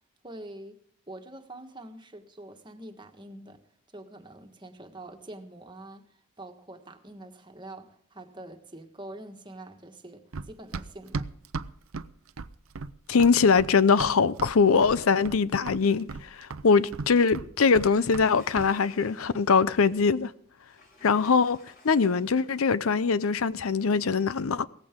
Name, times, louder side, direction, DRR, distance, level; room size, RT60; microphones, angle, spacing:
voice 1, 0.2-0.8 1.1-3.6 3.9-11.3, right 1 dB, 20° right, 1.5 m, -45 dB
Run, 10.3-14.6 14.8-15.4 15.7-18.3 18.6-18.7, right 4 dB, 85° right, 0.7 m, -36 dB
voice 2, 13.1-16.1 16.4-20.3 21.0-21.6 21.8-24.7, left 5 dB, 85° left, 0.6 m, -22 dB
Sliding door, 17.7-19.6 20.6-22.7, left 2 dB, 45° left, 5.1 m, -54 dB
17.5 x 15.0 x 3.7 m
head